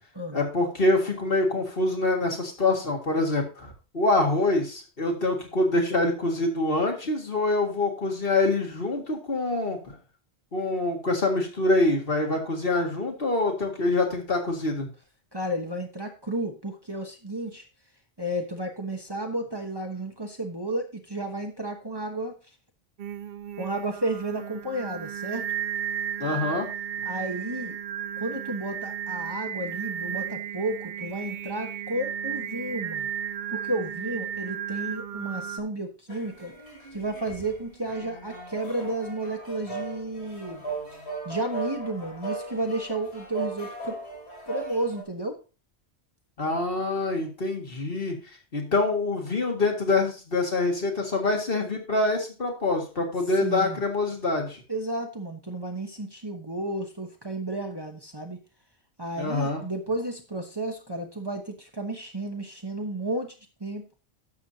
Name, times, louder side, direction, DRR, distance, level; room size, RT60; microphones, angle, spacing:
voice 1, 0.3-10.0 10.5-14.9 26.2-26.7 46.4-48.2 48.5-54.6 59.2-59.6, left 2 dB, 60° left, 1 dB, 2.1 m, -25 dB
voice 2, 15.3-17.7 18.2-22.3 23.6-25.5 27.0-27.8 28.2-33.1 33.5-36.5 36.9-40.6 41.2-44.0 44.5-45.4 53.4-53.8 54.7-58.4 59.0-63.9, right 1 dB, 25° right, 2 dB, 1.1 m, -32 dB
Singing, 23.0-35.6, right 9 dB, 60° right, 0.6 m, -34 dB
sound 1, 36.1-45.0, right 3 dB, 80° left, 3.1 m, -38 dB
11.5 x 7.1 x 2.9 m, 0.33 s
omnidirectional pair, 1.1 m